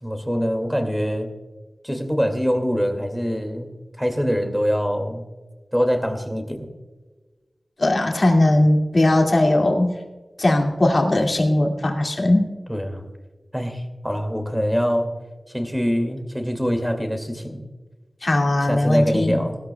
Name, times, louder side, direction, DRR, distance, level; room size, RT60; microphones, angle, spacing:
voice 1, 0.0-1.3 1.8-3.7 4.0-5.2 5.7-6.7 12.7-13.0 13.5-15.1 15.5-17.6 18.6-19.6, equal, 5° right, 5 dB, 2.3 m, -24 dB
voice 2, 7.8-10.0 10.4-12.5 18.2-19.4, left 1 dB, 50° left, 1 dB, 2.3 m, -19 dB
18.5 x 13.5 x 2.3 m, 1.3 s
wide cardioid pair, 70°, 0 cm